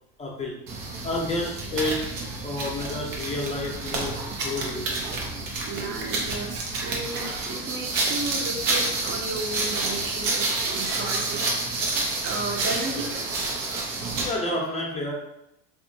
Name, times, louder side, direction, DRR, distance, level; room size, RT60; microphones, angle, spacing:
voice 1, 0.2-0.6 1.0-4.9 14.2-15.1, left 2 dB, 20° left, -1 dB, 0.5 m, -30 dB
sound 1, 0.7-14.4, right 3 dB, 90° right, 0.8 m, -29 dB
voice 2, 5.7-13.3, right 3 dB, 35° right, 2 dB, 0.6 m, -34 dB
2.7 x 2.4 x 2.6 m, 0.82 s
supercardioid pair, 110°, 37 cm